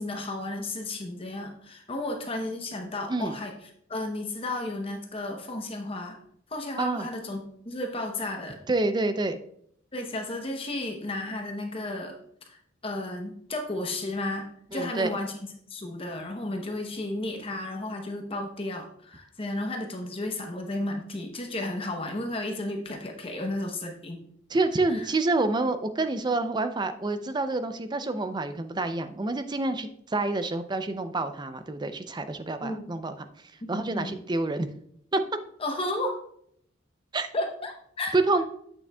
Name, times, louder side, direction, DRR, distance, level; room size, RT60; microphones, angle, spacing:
voice 1, 0.0-3.5 3.9-6.2 6.5-8.6 9.9-12.2 12.5-12.6 12.8-15.4 15.7-24.2 24.9-25.0 32.6-32.9 33.6-34.2 35.6-36.2 37.3-38.2, left 2 dB, 30° left, 3 dB, 0.8 m, -33 dB
voice 2, 8.7-9.4 14.7-15.1 24.5-33.3 33.7-34.7 35.1-35.2 37.1-37.3 38.1-38.4, right 2 dB, 20° right, 10 dB, 0.5 m, -27 dB
8.3 x 6.9 x 2.3 m, 0.68 s
head